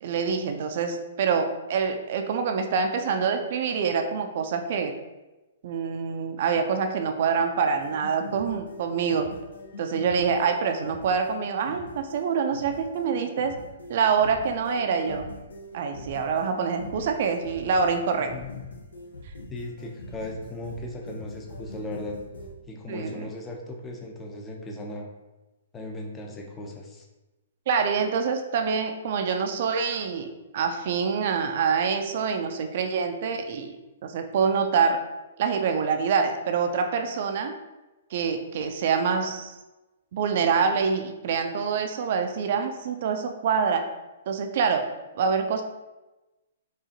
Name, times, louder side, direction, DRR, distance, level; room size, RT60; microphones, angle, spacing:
voice 1, 0.0-4.9 5.6-9.3 9.8-13.5 13.9-15.2 15.7-18.3 22.9-23.3 27.7-33.8 34.0-35.0 35.4-37.5 38.1-39.5 40.1-43.8 44.3-44.9 45.2-45.6, right 6 dB, 55° right, 5 dB, 0.4 m, -26 dB
sound 1, 7.7-22.5, left 1 dB, 80° left, 0.7 m, -43 dB
voice 2, 18.2-18.5 19.5-22.2 22.7-25.1 25.7-27.1, left 1 dB, 20° left, 1 dB, 0.6 m, -37 dB
4.7 x 2.4 x 2.8 m, 1.1 s
hypercardioid pair, 120°, 0 cm